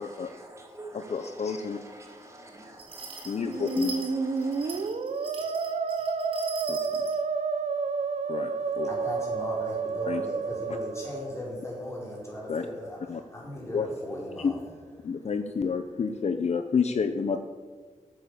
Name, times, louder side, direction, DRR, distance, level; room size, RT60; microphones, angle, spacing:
voice 1, 0.0-4.9, right 2 dB, 20° right, 2.5 m, -48 dB
voice 2, 1.1-1.8 3.3-3.9 6.7-6.8 8.3-8.9 10.1-10.2 12.5-12.7 13.1-13.2 13.7-13.9 14.4-14.5 15.0-17.4, left 5 dB, 55° left, 0.8 m, -29 dB
sound 1, 2.8-7.2, right 4 dB, 45° right, 4.3 m, -41 dB
Musical instrument, 3.3-11.4, right 4 dB, 60° right, 0.9 m, -30 dB
voice 3, 8.8-14.5, equal, 20° left, 4.6 m, -38 dB
15.0 x 9.0 x 6.8 m
wide cardioid pair, 155°, 13 cm